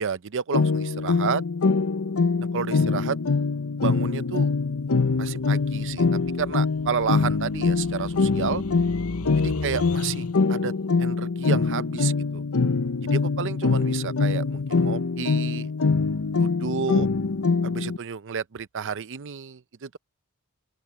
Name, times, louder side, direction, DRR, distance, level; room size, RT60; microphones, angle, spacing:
voice 1, 0.0-1.4 2.5-3.2 3.8-4.5 5.2-6.1 6.4-8.6 9.4-10.7 11.0-12.4 13.0-15.7 16.4-17.1 17.6-20.0, right 6 dB, 55° right, 0.6 m, -31 dB
sound 1, 0.5-18.0, left 4 dB, 65° left, 0.8 m, -24 dB
sound 2, 4.9-10.6, left 1 dB, 85° left, 7.0 m, -39 dB
open air
head